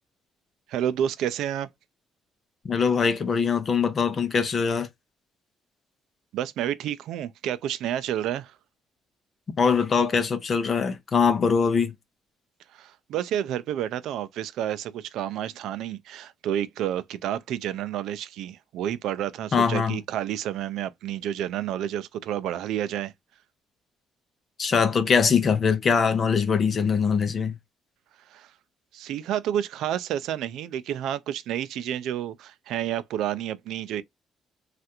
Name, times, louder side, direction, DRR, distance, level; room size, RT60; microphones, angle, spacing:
voice 1, 0.7-1.7 6.3-8.5 12.7-23.1 28.3-28.5 28.9-34.0, right 11 dB, 75° right, 0.3 m, -30 dB
voice 2, 2.6-4.9 9.6-11.9 19.5-20.0 24.6-27.6, left 6 dB, 30° left, 0.6 m, -22 dB
3.3 x 2.4 x 2.8 m
cardioid pair, 170°, 0 cm